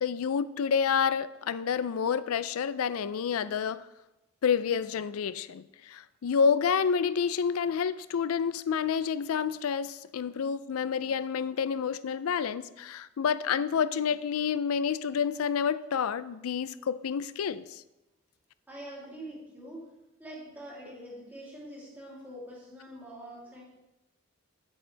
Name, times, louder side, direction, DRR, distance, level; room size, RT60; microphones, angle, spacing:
voice 1, 0.0-3.9 4.4-17.8, left 6 dB, 90° left, 0.4 m, -29 dB
voice 2, 18.7-19.8 20.2-23.6, right 1 dB, 10° right, 3.0 m, -44 dB
10.5 x 8.4 x 3.3 m
head